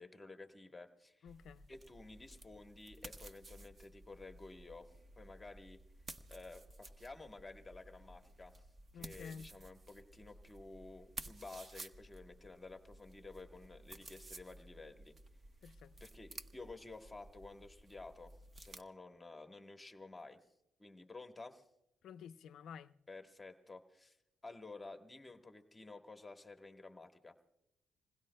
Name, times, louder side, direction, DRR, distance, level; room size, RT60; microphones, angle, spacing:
voice 1, 0.0-1.3 1.7-5.8 6.3-8.7 8.9-15.1 16.0-20.5 20.8-21.7 23.1-24.2 24.4-27.3, left 3 dB, 15° left, 1.1 m, -53 dB
voice 2, 1.2-1.7 8.9-9.5 15.6-15.9 22.0-23.0, left 7 dB, 70° left, 0.5 m, -51 dB
sound 1, 1.3-18.8, right 2 dB, 35° right, 0.9 m, -55 dB
28.0 x 21.0 x 2.2 m
cardioid pair, 90°, 0 cm